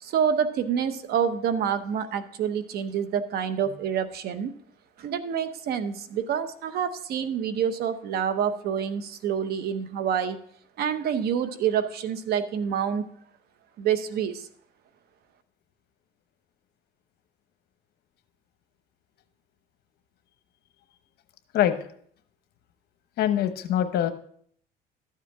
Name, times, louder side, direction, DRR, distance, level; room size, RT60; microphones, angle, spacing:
voice 1, 0.0-4.5 5.0-10.4 10.8-13.0 13.8-14.5, right 8 dB, 70° right, 11 dB, 0.9 m, -27 dB
voice 2, 23.2-24.1, left 11 dB, 70° left, 9 dB, 1.0 m, -23 dB
12.5 x 7.5 x 3.6 m, 0.62 s
cardioid pair, 110°, 17 cm